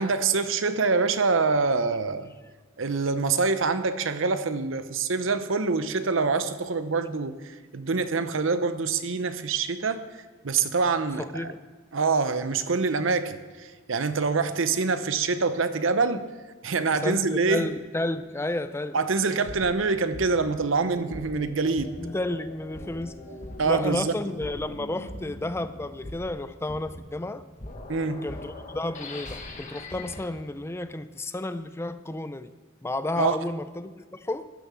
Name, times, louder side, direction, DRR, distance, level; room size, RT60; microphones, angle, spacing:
voice 1, 0.0-2.3 2.8-11.5 11.9-16.3 16.6-17.7 18.9-22.0 23.3-24.1 27.9-28.3 33.2-33.4, right 4 dB, 70° right, 0.7 m, -25 dB
voice 2, 11.2-11.6 17.0-19.0 22.0-23.2 23.6-27.4 28.2-32.5 32.8-34.5, left 2 dB, 10° left, 0.4 m, -32 dB
sound 1, 19.2-30.3, left 2 dB, 35° left, 1.5 m, -42 dB
12.0 x 10.5 x 6.1 m
head